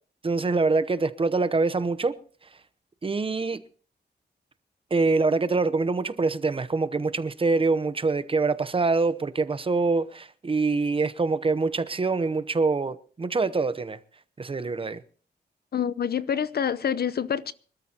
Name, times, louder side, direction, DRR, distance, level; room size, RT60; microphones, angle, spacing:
voice 1, 0.2-2.2 3.0-3.6 4.9-14.0 14.4-15.0, right 3 dB, 30° right, 0.9 m, -25 dB
voice 2, 15.7-17.5, left 8 dB, 65° left, 0.8 m, -27 dB
25.0 x 13.0 x 2.9 m
wide cardioid pair, 140°, 18 cm